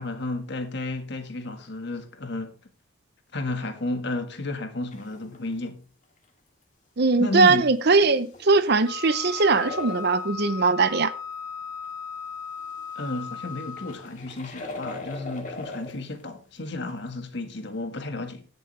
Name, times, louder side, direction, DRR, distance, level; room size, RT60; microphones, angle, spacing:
voice 1, 0.0-2.5 3.3-5.8 7.2-7.6 12.9-18.5, left 2 dB, 55° left, 1.7 m, -32 dB
sound 1, 4.9-5.5 8.2-10.2 13.3-16.0 16.9-17.0, left 2 dB, 35° left, 2.1 m, -39 dB
voice 2, 7.0-11.1, right 3 dB, 50° right, 0.7 m, -20 dB
Wind instrument woodwind instrument, 8.8-14.1, left 6 dB, 15° left, 1.2 m, -37 dB
17.0 x 7.0 x 3.3 m
head